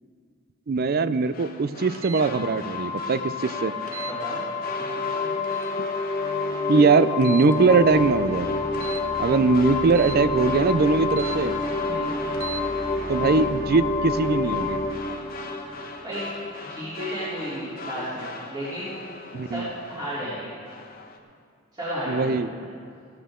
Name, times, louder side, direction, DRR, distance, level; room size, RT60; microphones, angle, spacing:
voice 1, 0.7-3.7 6.7-8.6 9.2-11.5 13.1-14.8 19.3-19.7 22.1-22.5, right 4 dB, 50° right, 14 dB, 0.4 m, -21 dB
sound 1, 1.2-20.3 20.6-21.2, left 3 dB, 50° left, 1.1 m, -40 dB
sound 2, 1.9-2.3 3.9-4.2 5.4-5.7 7.2-7.6 8.7-9.1 9.9-10.2 11.1-11.4 12.3-12.6, right 7 dB, 90° right, 0.8 m, -38 dB
sound 3, 2.2-16.6, left 3 dB, 15° left, 1.4 m, -28 dB
voice 2, 4.0-4.4 4.8-5.3 11.8-12.1 16.0-16.3 16.7-18.9 19.5-20.5 21.7-22.7, equal, 25° right, -12 dB, 3.4 m, -33 dB
15.5 x 13.5 x 3.8 m, 2.2 s
head